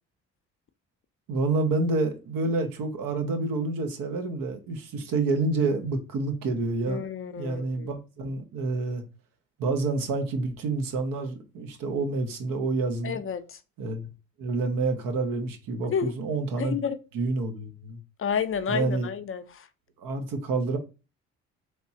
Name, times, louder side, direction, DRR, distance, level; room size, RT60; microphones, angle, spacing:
voice 1, 1.3-7.0 7.4-9.0 9.6-13.2 13.8-14.1 14.4-16.8 17.1-18.0 18.7-19.1 20.0-20.8, right 3 dB, 70° right, 0.9 m, -28 dB
voice 2, 6.9-7.9 13.0-13.4 15.9-16.1 16.6-17.0 18.2-19.4, left 7 dB, 40° left, 0.5 m, -30 dB
3.3 x 3.0 x 2.8 m
supercardioid pair, 60°, 35 cm